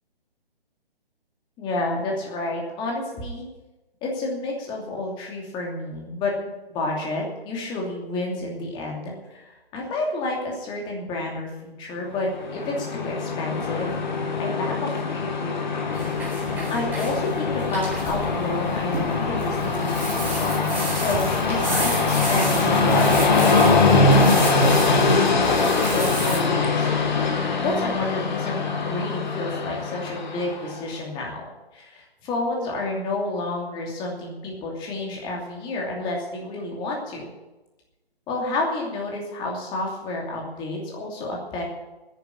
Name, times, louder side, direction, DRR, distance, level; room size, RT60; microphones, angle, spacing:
voice 1, 1.6-3.5 4.0-6.3 6.7-13.9 14.4-15.8 16.7-23.7 24.1-27.2 27.6-28.6 28.8-31.4 31.7-37.2 38.3-41.6, left 2 dB, 15° left, -1 dB, 2.8 m, -30 dB
Train, 12.2-30.8, left 3 dB, 50° left, 2.2 m, -22 dB
sound 1, 15.9-26.4, right 2 dB, 5° right, 4.1 m, -33 dB
10.5 x 10.0 x 9.9 m, 1.1 s
figure-of-eight pair, 140°, 31 cm